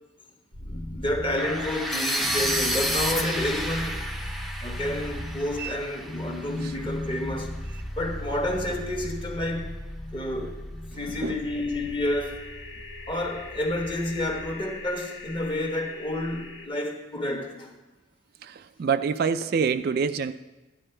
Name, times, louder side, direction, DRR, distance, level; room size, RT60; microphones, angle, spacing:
sound 1, 0.5-14.6, left 1 dB, 45° left, 1.0 m, -37 dB
voice 1, 0.6-4.0 4.6-7.5 7.9-9.7 10.1-10.6 10.9-12.4 13.1-17.7, left 1 dB, 25° left, 1.2 m, -30 dB
sound 2, 1.4-7.3, equal, ahead, 0.7 m, -30 dB
voice 2, 11.1-11.4 18.4-20.3, right 6 dB, 55° right, 0.3 m, -26 dB
sound 3, 11.4-16.7, left 3 dB, 70° left, 1.4 m, -42 dB
13.0 x 10.0 x 3.3 m
head